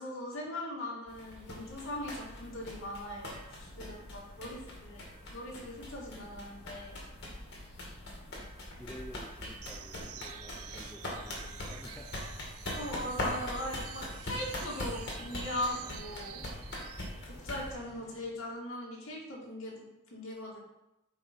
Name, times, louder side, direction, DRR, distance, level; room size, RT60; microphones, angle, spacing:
voice 1, 0.0-5.0 5.3-7.0 12.7-16.4 16.7-16.9 17.3-20.6, left 1 dB, 70° left, -3 dB, 2.2 m, -40 dB
sound 1, 1.1-17.7, left 1 dB, 50° left, 2.0 m, -42 dB
voice 2, 8.8-12.1 12.8-13.2, equal, 5° left, 1 dB, 0.5 m, -51 dB
sound 2, 9.6-17.2, right 12 dB, 90° right, 0.4 m, -49 dB
sound 3, 13.9-18.5, equal, 30° left, 1.9 m, -55 dB
8.3 x 5.4 x 4.4 m, 0.93 s
head